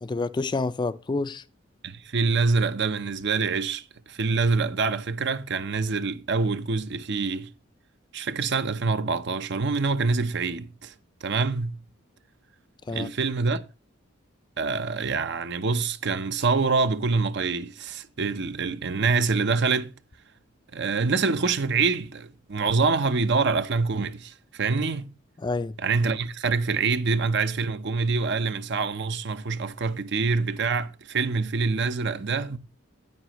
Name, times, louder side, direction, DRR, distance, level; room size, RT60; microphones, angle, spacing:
voice 1, 0.0-1.4 12.9-13.1 25.4-25.7, left 3 dB, 25° left, 0.4 m, -28 dB
voice 2, 1.8-7.5 8.1-10.9 11.2-11.8 12.9-13.6 14.6-19.9 20.7-25.1 25.8-32.6, right 4 dB, 60° right, 0.7 m, -25 dB
9.4 x 8.9 x 3.0 m
head